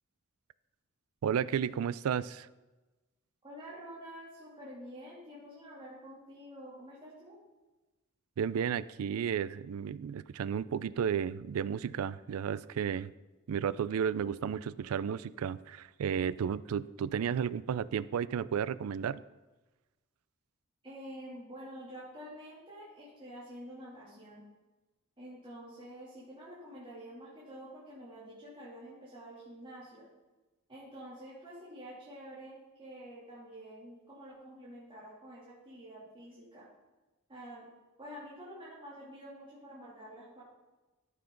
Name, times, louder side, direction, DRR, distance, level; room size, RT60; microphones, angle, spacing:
voice 1, 1.2-2.5 8.4-13.1 13.5-19.2, right 8 dB, 85° right, 18 dB, 0.4 m, -33 dB
voice 2, 3.4-7.3 20.8-24.5 25.2-30.1 30.7-36.7 37.3-37.7 38.0-40.4, equal, 25° right, -9 dB, 2.8 m, -48 dB
13.0 x 6.8 x 3.9 m, 1.1 s
head